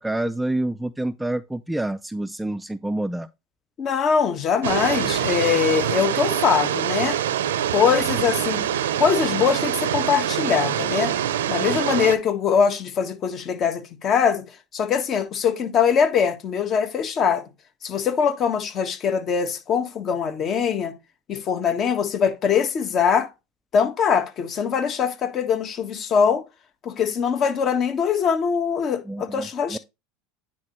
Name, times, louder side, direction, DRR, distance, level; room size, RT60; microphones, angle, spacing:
voice 1, 0.0-3.3 29.1-29.8, right 1 dB, 5° right, 0.4 m, -28 dB
voice 2, 3.8-7.2 7.7-8.6 9.0-11.1 11.5-14.5 14.7-17.4 17.8-20.9 21.3-23.3 23.7-26.4 26.8-29.8, left 7 dB, 40° left, 1.5 m, -22 dB
sound 1, 4.6-12.2, right 10 dB, 90° right, 0.6 m, -24 dB
9.5 x 4.3 x 3.1 m
supercardioid pair, 100°, 0 cm